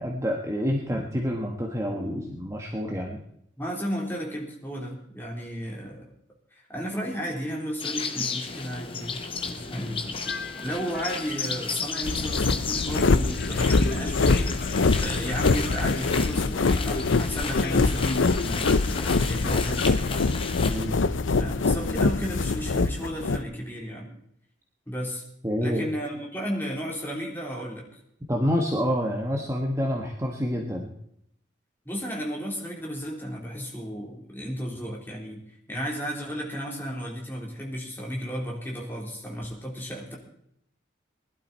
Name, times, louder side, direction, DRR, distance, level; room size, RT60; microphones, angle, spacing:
voice 1, 0.0-3.2 9.7-10.0 20.7-20.9 25.4-25.8 28.3-30.9, equal, 15° right, 1 dB, 1.3 m, -28 dB
voice 2, 3.6-6.1 6.5-14.5 15.0-18.8 19.2-20.0 21.4-24.1 24.9-25.2 25.6-27.9 31.9-35.4 35.7-40.2, equal, 10° left, -2 dB, 3.8 m, -33 dB
sound 1, 7.8-20.9, left 5 dB, 30° left, 1.1 m, -34 dB
sound 2, 8.5-18.5, left 3 dB, 55° left, 0.8 m, -38 dB
sound 3, 12.0-23.4, left 3 dB, 85° left, 0.6 m, -24 dB
20.0 x 12.0 x 4.3 m, 0.71 s
head